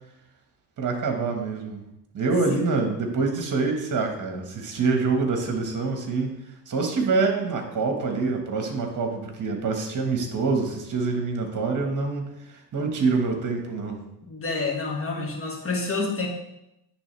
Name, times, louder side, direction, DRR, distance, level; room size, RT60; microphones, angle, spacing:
voice 1, 0.8-1.8 2.1-6.4 6.7-14.0, right 4 dB, 45° right, 4 dB, 1.5 m, -26 dB
voice 2, 14.2-16.3, left 3 dB, 30° left, 1 dB, 1.7 m, -28 dB
9.8 x 3.4 x 3.3 m, 0.84 s
supercardioid pair, 70°, 44 cm